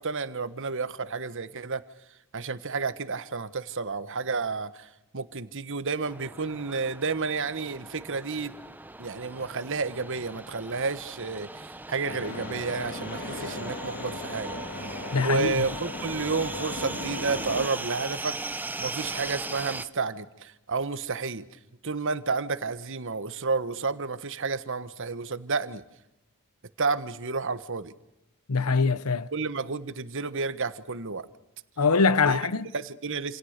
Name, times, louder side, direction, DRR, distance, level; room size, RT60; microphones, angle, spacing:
voice 1, 0.0-1.8 2.3-4.9 5.1-8.6 9.0-14.6 15.2-18.4 18.8-21.5 21.8-25.8 26.8-27.9 29.3-31.3 32.2-32.4 32.7-33.4, right 4 dB, 60° right, 1.3 m, -31 dB
sound 1, 6.0-19.8, right 2 dB, 10° right, 0.9 m, -39 dB
sound 2, 12.0-17.7, left 2 dB, 50° left, 3.2 m, -37 dB
voice 2, 15.1-15.7 28.5-29.3 31.8-32.7, left 4 dB, 80° left, 1.0 m, -23 dB
28.0 x 28.0 x 6.7 m
head